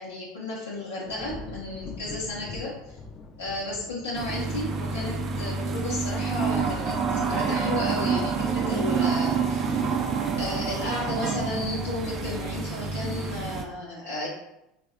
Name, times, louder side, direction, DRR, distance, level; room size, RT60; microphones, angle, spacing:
voice 1, 0.0-2.7 3.4-10.0 10.4-14.3, left 2 dB, 90° left, -6 dB, 0.5 m, -33 dB
sound 1, 1.0-12.3 12.8-13.2, left 4 dB, 35° left, 0.4 m, -46 dB
sound 2, 4.1-13.6, right 5 dB, 45° right, 0.4 m, -28 dB
3.4 x 2.1 x 2.4 m, 0.86 s
hypercardioid pair, 80°, 0 cm